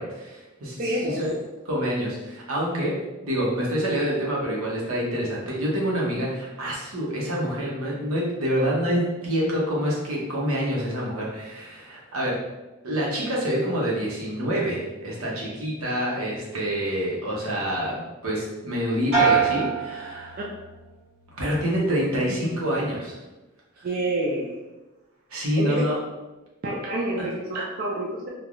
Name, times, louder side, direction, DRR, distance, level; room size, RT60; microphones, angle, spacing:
voice 1, 0.0-1.3 1.7-3.0 3.2-12.4 12.8-20.4 21.3-23.2 25.3-26.0 27.2-27.3, equal, 80° right, -4 dB, 0.8 m, -27 dB
voice 2, 0.8-1.4 22.3-22.4 23.8-24.6 25.6-25.7 26.6-28.3, right 1 dB, 40° right, -3 dB, 0.3 m, -28 dB
sound 1, 19.1-20.8 21.2-21.8, right 6 dB, 60° right, 1.4 m, -25 dB
3.2 x 2.2 x 2.4 m, 1.1 s
head